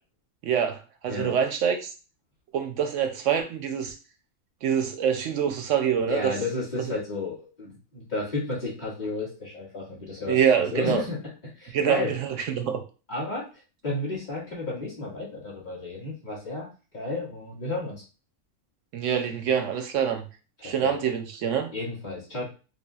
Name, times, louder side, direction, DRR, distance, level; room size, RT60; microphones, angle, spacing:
voice 1, 0.4-0.8 1.0-1.9 2.5-4.0 4.6-6.3 10.3-11.0 11.7-12.7 18.9-20.2 20.6-21.7, right 8 dB, 70° right, 5 dB, 0.8 m, -25 dB
voice 2, 6.0-10.4 10.7-12.1 13.1-13.5 13.8-16.7 16.9-18.0 20.6-21.0 21.7-22.4, left 2 dB, 30° left, -7 dB, 1.9 m, -32 dB
5.0 x 2.4 x 2.3 m, 0.34 s
omnidirectional pair, 1.5 m